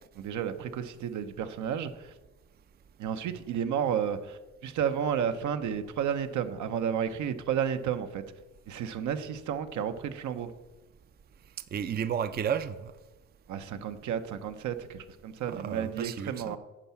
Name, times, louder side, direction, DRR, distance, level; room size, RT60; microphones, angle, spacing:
voice 1, 0.1-2.1 3.0-8.2 8.7-10.5 13.5-16.6, right 8 dB, 75° right, 9 dB, 0.8 m, -32 dB
voice 2, 11.7-12.9 15.5-16.6, right 8 dB, 35° right, 12 dB, 0.5 m, -32 dB
10.0 x 4.7 x 7.0 m, 1.1 s
cardioid pair, 90°, 30 cm